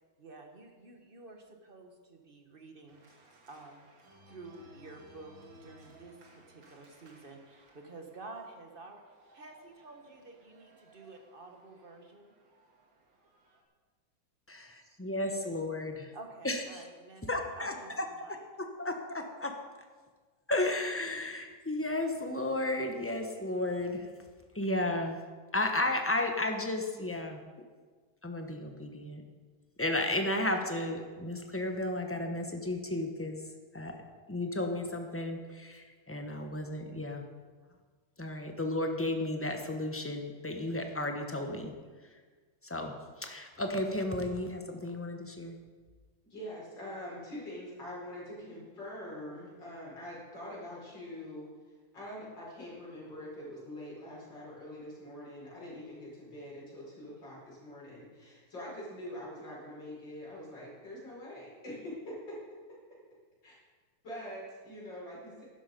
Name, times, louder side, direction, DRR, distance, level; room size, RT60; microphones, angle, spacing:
voice 1, 0.2-3.0 3.5-3.8 4.3-5.3 5.6-9.0 9.3-12.3 14.6-15.0 16.1-18.4, right 3 dB, 30° right, 4 dB, 1.3 m, -50 dB
Organ, 2.9-13.6, right 1 dB, 75° right, 2.5 m, -60 dB
voice 2, 14.5-16.1 16.4-16.8 17.3-19.5 20.5-24.1 24.5-25.2 25.5-27.4 28.2-29.2 29.8-33.9 34.3-37.2 38.2-41.7 42.0-42.2 42.6-45.6, left 1 dB, 10° left, 4 dB, 0.6 m, -33 dB
voice 3, 46.3-51.5 51.9-62.4 63.4-63.6 64.0-65.4, left 1 dB, 70° left, -6 dB, 5.6 m, -44 dB
12.5 x 11.0 x 5.2 m, 1.5 s
omnidirectional pair, 2.1 m